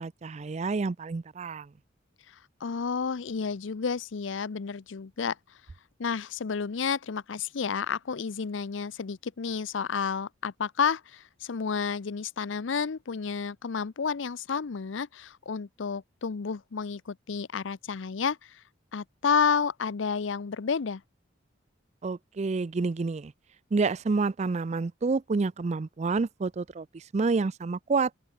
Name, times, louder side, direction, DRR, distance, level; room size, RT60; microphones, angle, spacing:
voice 1, 0.0-1.7 22.0-23.3 23.7-28.1, right 4 dB, 35° right, 0.4 m, -28 dB
voice 2, 2.6-5.4 6.0-18.6 18.9-21.0, left 6 dB, 75° left, 0.6 m, -30 dB
head